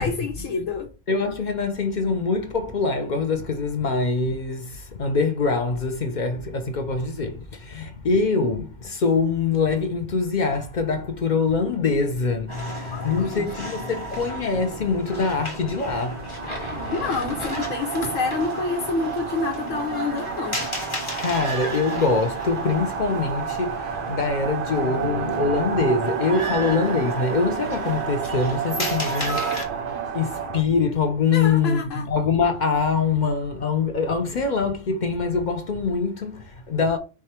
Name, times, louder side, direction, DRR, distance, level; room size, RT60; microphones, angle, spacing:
voice 1, 0.0-0.9 12.6-13.5 16.9-20.7 26.5-26.7 31.3-32.1, left 4 dB, 90° left, 1.1 m, -28 dB
voice 2, 1.1-16.3 21.2-37.0, left 4 dB, 50° left, 0.6 m, -24 dB
sound 1, 12.5-29.6, right 1 dB, 25° left, 1.1 m, -32 dB
sound 2, 16.0-30.6, right 7 dB, 60° right, 0.6 m, -31 dB
4.8 x 2.2 x 4.2 m
omnidirectional pair, 1.3 m